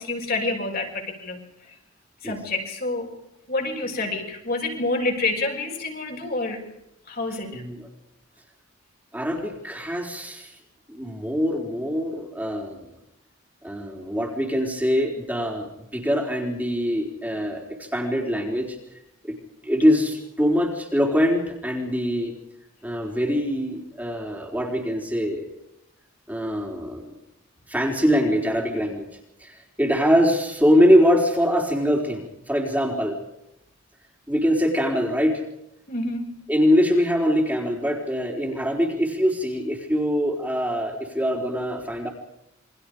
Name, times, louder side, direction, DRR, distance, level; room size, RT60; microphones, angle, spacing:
voice 1, 0.0-1.4 2.2-3.1 3.5-6.6 7.1-7.6 35.9-36.4, left 2 dB, 45° left, 1 dB, 6.1 m, -28 dB
voice 2, 7.3-7.9 9.1-10.6 10.9-12.9 13.6-18.8 19.2-19.3 19.6-22.4 22.8-25.4 26.3-27.1 27.7-29.0 29.4-33.2 34.3-35.4 36.5-42.1, equal, 5° right, -1 dB, 4.1 m, -23 dB
29.0 x 25.0 x 5.1 m, 0.82 s
head